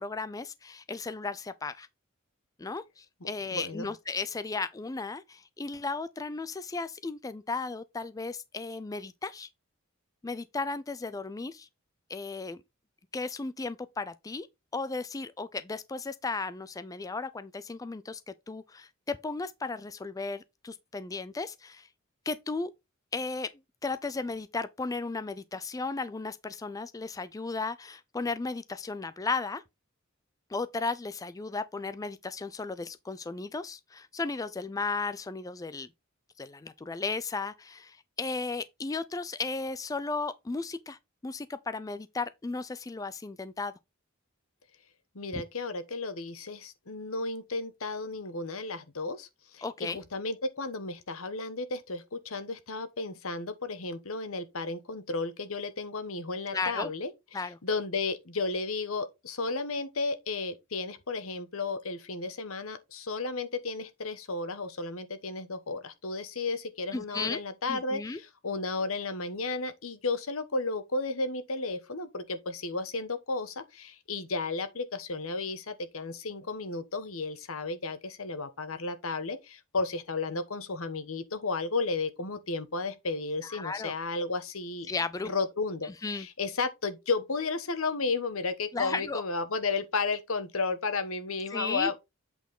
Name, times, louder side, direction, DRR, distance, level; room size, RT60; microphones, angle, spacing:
voice 1, 0.0-1.9 2.6-9.5 10.2-11.7 12.1-12.6 13.1-14.5 14.7-21.9 22.3-22.7 23.1-23.5 23.8-29.6 30.5-35.9 36.4-43.7 45.3-45.4 49.6-50.0 56.5-56.9 57.3-57.6 66.9-67.4 67.7-68.2 83.4-83.9 84.9-85.3 86.0-86.3 88.7-89.2 91.5-91.9, left 3 dB, 15° left, 0.3 m, -35 dB
voice 2, 3.5-3.9 45.1-57.1 57.6-84.9 85.2-92.0, left 3 dB, 80° left, 1.3 m, -33 dB
8.1 x 4.6 x 3.7 m
head